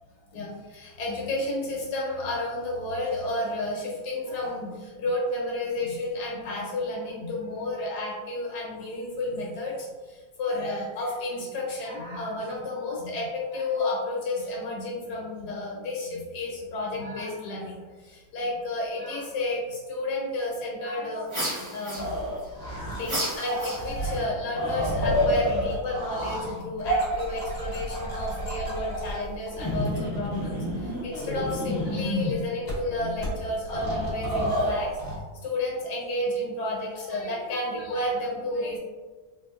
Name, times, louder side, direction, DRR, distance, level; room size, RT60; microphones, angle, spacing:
voice 1, 0.3-22.2 23.0-34.9 35.4-38.8, left 2 dB, 60° left, -3 dB, 1.5 m, -31 dB
sound 1, 21.3-22.4 23.0-24.2, equal, 15° right, 0.7 m, -32 dB
sound 2, 21.9-23.1 23.4-32.3 32.7-32.8 33.2-33.3 33.7-35.2, equal, 35° left, 1.2 m, -29 dB
3.8 x 2.8 x 2.4 m, 1.3 s
omnidirectional pair, 2.0 m